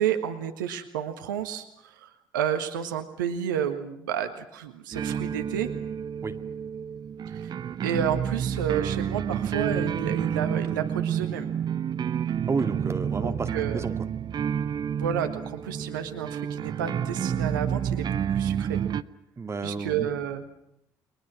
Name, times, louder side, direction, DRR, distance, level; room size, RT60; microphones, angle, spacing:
voice 1, 0.0-5.7 7.3-7.5 7.8-11.5 13.2-13.9 14.9-18.8 19.6-20.4, right 9 dB, 75° right, 7 dB, 1.7 m, -31 dB
Western Bass, 4.9-19.0, right 8 dB, 40° right, 0.9 m, -29 dB
voice 2, 12.5-13.9 19.4-20.1, right 4 dB, 25° right, 6 dB, 2.3 m, -31 dB
30.0 x 23.5 x 6.2 m, 0.77 s
figure-of-eight pair, 50°, 11 cm